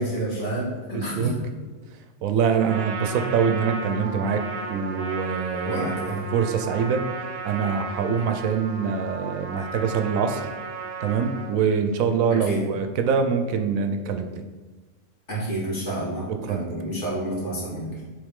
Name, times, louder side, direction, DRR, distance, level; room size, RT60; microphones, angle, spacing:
voice 1, 0.0-1.3 5.6-6.2 12.3-12.7 15.3-18.0, right 1 dB, 55° left, -6 dB, 2.4 m, -29 dB
voice 2, 0.9-1.4 2.2-4.4 4.7-7.0 7.4-10.4 11.0-14.3 16.4-16.7, right 6 dB, 75° right, 6 dB, 1.0 m, -24 dB
Trumpet, 2.5-11.6, right 4 dB, 55° right, 0.8 m, -34 dB
7.9 x 3.6 x 3.6 m, 1.3 s
omnidirectional pair, 1.4 m